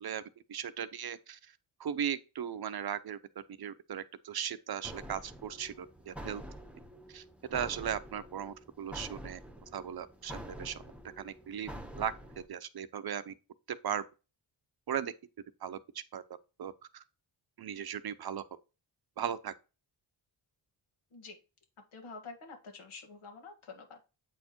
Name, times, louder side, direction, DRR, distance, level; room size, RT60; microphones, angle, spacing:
voice 1, 0.5-1.4 1.8-3.2 3.6-6.4 7.1-7.2 7.5-9.4 9.7-10.8 11.2-11.7 12.0-12.1 12.5-13.3 13.7-14.0 14.9-15.1 15.6-15.8 16.1-16.2 16.6-17.0 17.6-18.4 19.2-19.5, right 9 dB, 50° right, 0.6 m, -37 dB
sound 1, 4.8-12.5, equal, 5° right, 0.9 m, -47 dB
voice 2, 21.9-24.0, left 4 dB, 85° left, 1.8 m, -48 dB
8.2 x 4.4 x 3.0 m
cardioid pair, 90°, 47 cm